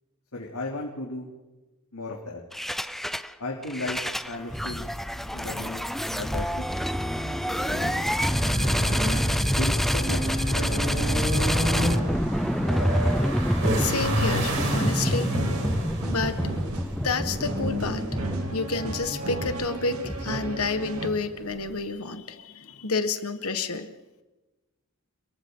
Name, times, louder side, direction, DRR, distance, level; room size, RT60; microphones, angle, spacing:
voice 1, 0.3-1.3 1.9-2.4 3.4-4.0 4.3-4.9 5.3-5.8 6.1-6.5 7.7-8.0 9.5-11.0, left 2 dB, 90° left, -2 dB, 3.2 m, -35 dB
sound 1, 2.5-3.3 3.6-20.6, equal, ahead, 0.6 m, -27 dB
sound 2, 5.2-21.8, right 1 dB, 65° right, 5.0 m, -32 dB
voice 2, 13.8-15.3 16.1-16.4 17.0-18.0 18.5-23.9, left 4 dB, 70° left, 8 dB, 1.7 m, -29 dB
sound 3, 15.3-21.1, right 2 dB, 85° right, 2.6 m, -35 dB
28.5 x 23.0 x 4.0 m, 1.1 s
head